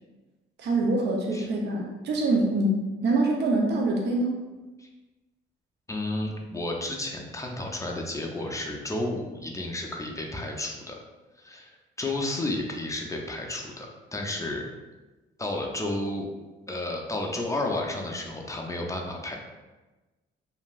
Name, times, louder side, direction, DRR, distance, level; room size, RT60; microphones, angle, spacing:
voice 1, 0.6-4.4, right 2 dB, 60° right, 0 dB, 0.5 m, -25 dB
voice 2, 5.9-10.9 11.4-11.7 12.0-14.7 15.4-16.3 16.7-19.4, left 2 dB, 15° left, 1 dB, 0.4 m, -32 dB
2.9 x 2.5 x 2.3 m, 1.2 s
cardioid pair, 90°, 20 cm